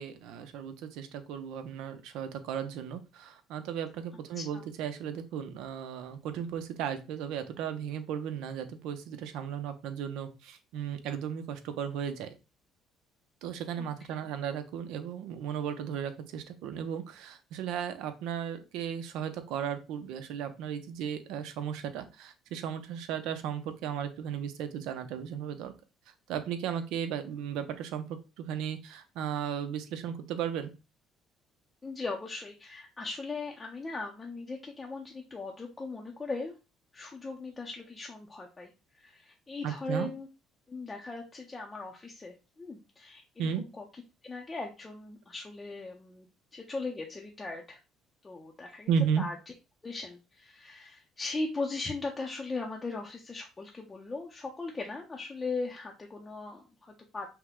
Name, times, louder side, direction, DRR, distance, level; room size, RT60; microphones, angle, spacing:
voice 1, 0.0-12.3 13.4-25.7 26.3-30.7 39.6-40.1 43.4-43.6 48.9-49.2, right 8 dB, 80° right, 9 dB, 0.7 m, -35 dB
voice 2, 31.8-36.5 36.9-40.3 40.7-43.2 43.6-43.9 44.2-46.3 46.5-47.8 48.2-48.9 49.2-49.4 49.8-57.3, left 3 dB, 20° left, -1 dB, 0.6 m, -38 dB
5.7 x 2.2 x 3.6 m, 0.29 s
cardioid pair, 135°, 0 cm